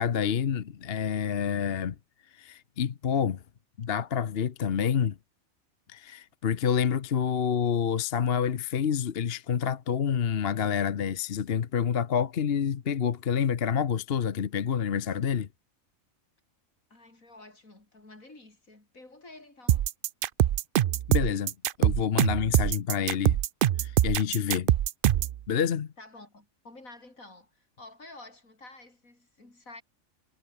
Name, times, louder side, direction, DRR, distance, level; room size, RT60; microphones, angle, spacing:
voice 1, 0.0-2.0 2.3-3.4 3.8-5.2 5.9-15.5 21.1-23.4 23.8-24.8 25.5-25.9, left 7 dB, 50° left, 1.1 m, -28 dB
voice 2, 16.9-19.9 22.5-22.6 26.0-29.8, left 2 dB, 80° left, 6.0 m, -50 dB
sound 1, 19.7-25.4, right 12 dB, 70° right, 0.5 m, -24 dB
omnidirectional pair, 1.4 m